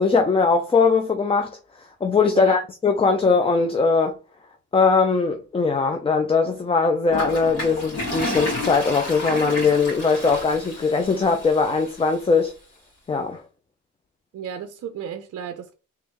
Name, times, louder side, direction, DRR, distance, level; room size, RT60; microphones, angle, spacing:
voice 1, 0.0-1.6 2.0-4.2 4.7-12.5 13.1-13.4, left 4 dB, 20° left, 0.4 m, -20 dB
voice 2, 2.3-2.6 14.3-15.7, right 8 dB, 55° right, 0.5 m, -33 dB
Toilet flush, 7.1-12.1, left 1 dB, 55° left, 2.2 m, -30 dB
3.5 x 3.1 x 2.9 m
cardioid pair, 90°, 30 cm